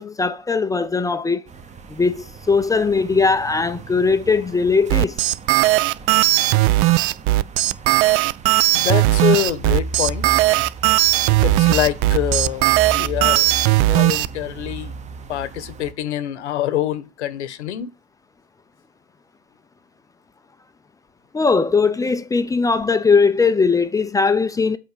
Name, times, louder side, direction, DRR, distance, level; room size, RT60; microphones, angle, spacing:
voice 1, 0.0-1.4 1.9-5.1 21.3-24.8, left 4 dB, 10° left, 0.5 m, -19 dB
sound 1, 1.5-15.9, right 4 dB, 20° right, 0.9 m, -34 dB
sound 2, 4.9-14.3, right 19 dB, 40° right, 0.4 m, -17 dB
voice 2, 8.7-10.2 11.4-13.5 13.9-14.9 15.3-17.9, left 12 dB, 80° left, 1.3 m, -25 dB
7.9 x 4.6 x 6.7 m
hypercardioid pair, 115°, 34 cm